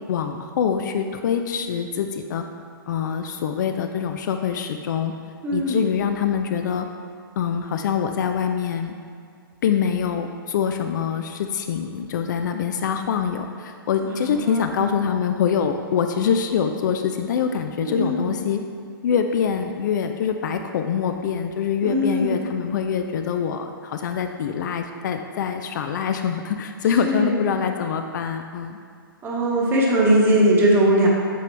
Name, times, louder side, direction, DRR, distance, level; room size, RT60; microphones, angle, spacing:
voice 1, 0.1-2.4 2.9-5.1 5.5-6.9 7.4-8.9 9.6-18.6 19.0-28.8, left 7 dB, 55° left, 6 dB, 0.4 m, -24 dB
voice 2, 5.4-5.8 14.0-14.6 17.8-18.3 21.8-22.3 27.0-27.4 29.2-31.1, right 1 dB, 20° right, -3 dB, 1.1 m, -20 dB
7.5 x 3.8 x 3.4 m, 2.1 s
hypercardioid pair, 130°, 12 cm